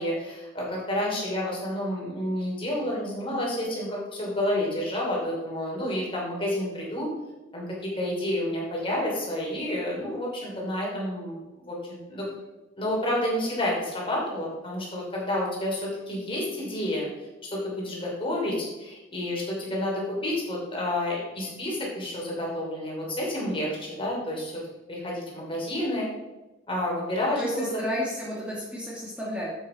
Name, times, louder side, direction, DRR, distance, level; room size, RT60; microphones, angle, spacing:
voice 1, 0.0-7.1 7.5-11.4 11.7-12.3 12.8-17.1 17.4-24.5 24.9-26.0 26.7-27.8, left 1 dB, 30° left, -4 dB, 3.0 m, -30 dB
voice 2, 27.4-29.5, equal, 5° right, -6 dB, 1.4 m, -31 dB
7.8 x 6.6 x 4.4 m, 1.1 s
head